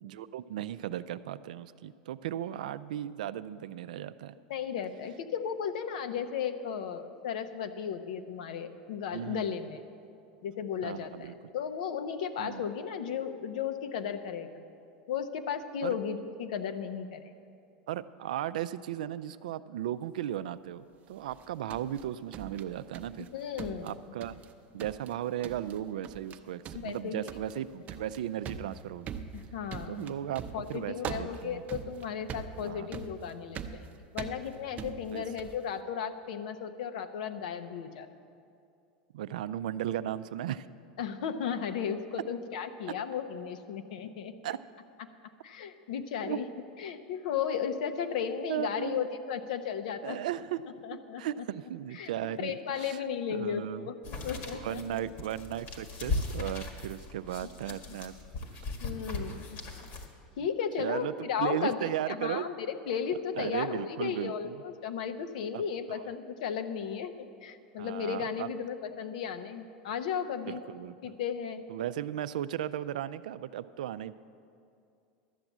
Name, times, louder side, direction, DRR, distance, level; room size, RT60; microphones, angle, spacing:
voice 1, 0.0-4.3 9.1-9.6 10.8-11.3 12.4-12.6 15.8-16.0 17.9-23.3 23.8-24.4 24.7-29.1 29.9-30.4 30.7-31.6 32.6-32.9 35.1-35.2 39.1-40.7 44.4-44.6 46.2-46.4 48.5-49.1 50.0-50.6 50.9-53.0 53.3-53.9 54.5-58.2 59.3-59.4 60.8-62.5 63.4-64.6 65.5-65.6 67.8-68.5 70.5-71.1 71.7-74.1, right 11 dB, 80° right, 13 dB, 0.4 m, -36 dB
voice 2, 4.5-9.8 10.4-14.6 15.1-17.2 23.3-24.0 26.7-27.3 29.3-33.9 34.1-38.1 41.0-44.3 45.4-46.5 46.8-50.2 50.8-51.2 51.9-52.1 52.4-55.0 58.8-59.6 60.4-67.1 67.4-70.6 71.0-71.6, left 7 dB, 75° left, 8 dB, 0.8 m, -35 dB
sound 1, 21.3-23.3 23.6-24.5 24.8-25.1 25.4-25.8 26.0-26.4 26.6-35.6, right 7 dB, 40° right, 0.7 m, -42 dB
sound 2, 54.0-60.1, left 3 dB, 50° left, 1.8 m, -38 dB
12.0 x 7.8 x 7.3 m, 2.5 s
hypercardioid pair, 105°, 4 cm